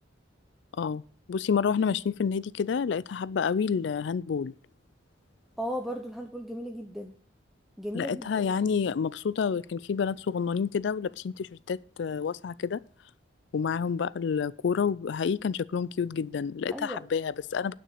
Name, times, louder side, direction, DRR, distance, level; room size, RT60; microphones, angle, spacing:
voice 1, 1.3-4.5 7.9-12.8 13.5-17.7, left 6 dB, 65° left, 0.4 m, -29 dB
voice 2, 5.6-7.1 7.8-8.5 16.7-17.0, equal, ahead, 0.7 m, -36 dB
9.4 x 6.2 x 6.4 m
head